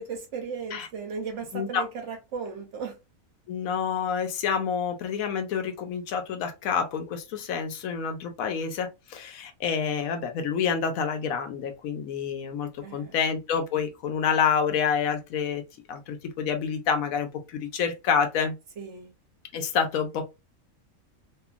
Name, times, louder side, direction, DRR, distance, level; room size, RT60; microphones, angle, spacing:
voice 1, 0.0-3.0 12.8-13.2 18.8-19.1, right 5 dB, 65° right, 0.9 m, -36 dB
voice 2, 1.5-1.8 3.5-15.6 15.9-18.5 19.5-20.3, left 6 dB, 75° left, 1.0 m, -28 dB
2.8 x 2.4 x 2.3 m
omnidirectional pair, 1.5 m